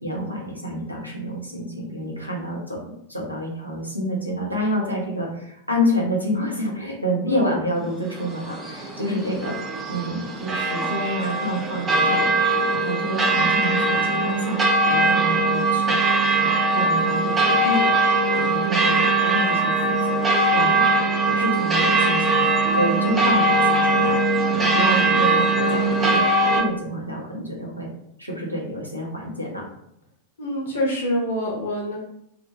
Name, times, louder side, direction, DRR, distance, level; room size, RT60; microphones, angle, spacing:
voice 1, 0.0-2.8 3.1-9.6 9.9-14.6 14.9-17.9 18.3-19.7 20.1-20.9 21.3-22.5 22.8-26.3 26.5-27.9 28.2-29.7, equal, 90° right, -2 dB, 0.6 m, -28 dB
sound 1, 8.1-26.6, right 2 dB, 15° right, 0.5 m, -21 dB
voice 2, 30.4-32.0, equal, 65° left, -1 dB, 0.5 m, -25 dB
2.3 x 2.1 x 3.0 m, 0.74 s
figure-of-eight pair, 90°, 0 cm